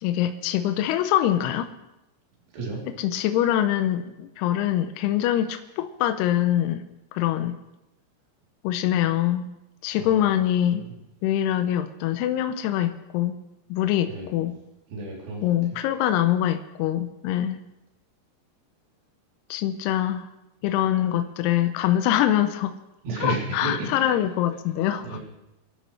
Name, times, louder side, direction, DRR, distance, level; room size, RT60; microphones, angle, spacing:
voice 1, 0.0-1.7 3.0-6.8 7.1-7.6 8.6-9.5 9.8-10.9 11.2-13.3 13.7-14.5 15.4-17.6 19.5-20.3 20.6-22.7 23.2-25.2, left 12 dB, 80° left, 7 dB, 2.7 m, -24 dB
voice 2, 2.5-2.9 9.9-10.4 10.7-10.9 14.1-14.3 14.9-15.5 21.0-21.1 23.0-23.9 25.0-25.2, right 2 dB, 80° right, -3 dB, 5.4 m, -32 dB
25.5 x 12.5 x 3.2 m, 0.91 s
omnidirectional pair, 4.9 m